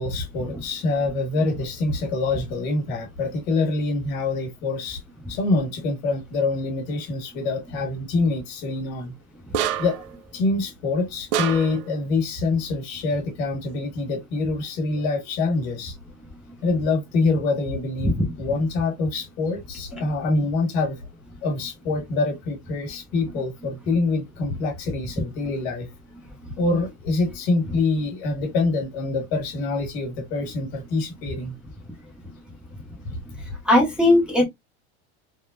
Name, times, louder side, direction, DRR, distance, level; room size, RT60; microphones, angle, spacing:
voice 1, 0.0-5.0 5.3-9.1 9.8-10.0 10.3-15.9 16.6-21.0 21.4-25.9 26.6-31.5, left 3 dB, 60° left, 1.7 m, -25 dB
sound 1, 9.5-10.1 11.3-11.9, right 11 dB, 50° right, 0.4 m, -26 dB
voice 2, 33.6-34.5, left 1 dB, 5° right, 0.6 m, -18 dB
3.5 x 2.0 x 2.4 m
supercardioid pair, 125°, 34 cm